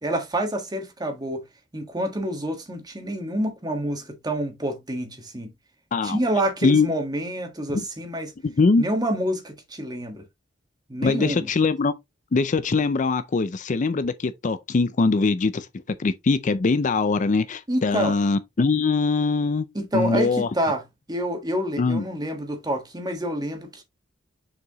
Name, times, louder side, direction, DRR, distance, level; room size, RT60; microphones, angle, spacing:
voice 1, 0.0-1.4 1.7-5.5 6.0-8.3 8.8-10.2 10.9-11.5 17.7-18.1 19.7-20.8 21.1-23.8, right 1 dB, 20° right, 1.5 m, -27 dB
voice 2, 8.4-8.9 11.0-11.9 12.3-15.7 16.0-19.7 19.9-20.5 21.8-22.0, left 4 dB, 40° left, 0.5 m, -22 dB
6.8 x 4.7 x 3.0 m
head